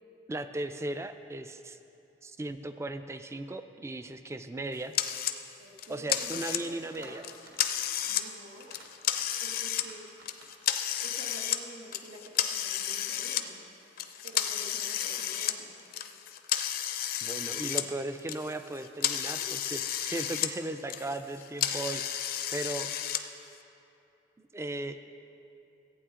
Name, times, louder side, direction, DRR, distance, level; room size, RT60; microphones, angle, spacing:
voice 1, 0.3-1.8 2.2-4.9 5.9-7.2 17.2-23.3 24.4-25.0, right 2 dB, 15° right, 10 dB, 0.3 m, -37 dB
sound 1, 4.9-5.4 5.8-6.8 7.2-8.3 8.6-9.9 10.3-11.6 11.9-13.4 14.0-17.9 18.2-20.5 20.8-23.2, left 10 dB, 55° left, 0.5 m, -32 dB
voice 2, 5.6-7.2 8.1-8.7 9.4-10.0 11.0-13.6 14.2-15.7 19.4-19.5, right 1 dB, 85° right, 0 dB, 1.4 m, -48 dB
sound 2, 6.0-6.5 6.8-7.1 7.4-7.7 7.9-8.2 8.6-9.4 9.7-10.5, right 2 dB, 60° right, 1.8 m, -53 dB
15.0 x 8.7 x 3.7 m, 2.8 s
head